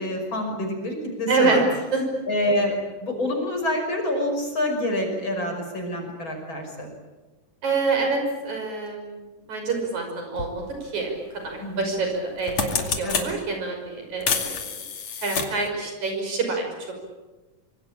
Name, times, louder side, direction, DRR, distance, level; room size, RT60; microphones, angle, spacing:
voice 1, 0.0-1.6 2.3-2.7 3.0-6.9 11.6-11.9 13.0-13.2, left 1 dB, 35° left, 2 dB, 6.4 m, -27 dB
voice 2, 1.3-1.6 1.9-2.0 7.6-14.6 15.2-16.7, right 3 dB, 60° right, 3 dB, 7.1 m, -26 dB
sound 1, 10.4-10.5 11.8-12.0 12.3-13.3 14.2-15.7, left 6 dB, 55° left, 3.5 m, -27 dB
25.5 x 25.0 x 8.8 m, 1.2 s
omnidirectional pair, 3.8 m